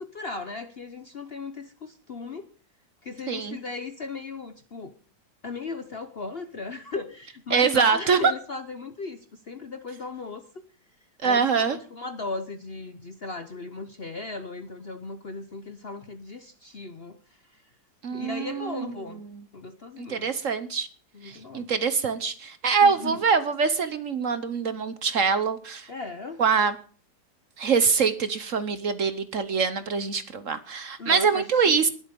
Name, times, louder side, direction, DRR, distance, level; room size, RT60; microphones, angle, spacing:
voice 1, 0.0-2.5 3.0-4.9 5.4-10.4 11.2-17.2 17.5-17.6 18.1-19.2 19.5-20.3 21.1-21.7 22.8-23.2 25.9-26.4 31.0-31.9, left 3 dB, 45° left, 9 dB, 0.8 m, -37 dB
voice 2, 3.3-3.6 7.5-8.3 11.2-11.8 18.0-18.9 19.3-19.4 20.0-20.9 21.2-25.9 26.4-26.8 27.6-31.9, right 5 dB, 55° right, 12 dB, 1.2 m, -24 dB
20.0 x 7.9 x 5.3 m, 0.41 s
omnidirectional pair, 1.9 m